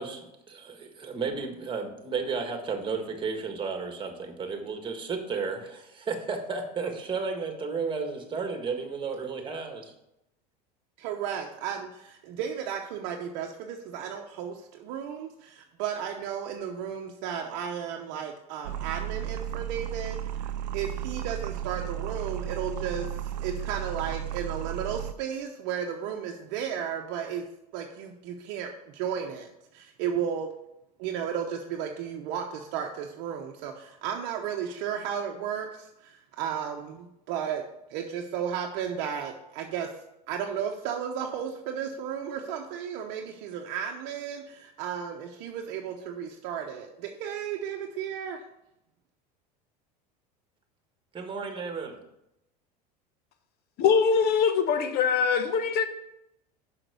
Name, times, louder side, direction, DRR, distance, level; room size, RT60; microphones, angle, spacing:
voice 1, 0.0-9.8 51.1-52.0, right 5 dB, 25° right, 5 dB, 1.7 m, -33 dB
voice 2, 11.0-27.4 27.7-30.5 31.0-37.6 37.9-39.9 40.3-48.4, right 8 dB, 60° right, 2 dB, 0.8 m, -34 dB
sound 1, 18.6-25.1, right 10 dB, 90° right, 0.5 m, -34 dB
voice 3, 53.8-55.8, left 6 dB, 50° left, 9 dB, 1.0 m, -23 dB
5.9 x 5.8 x 6.7 m, 0.86 s
hypercardioid pair, 95°, 21 cm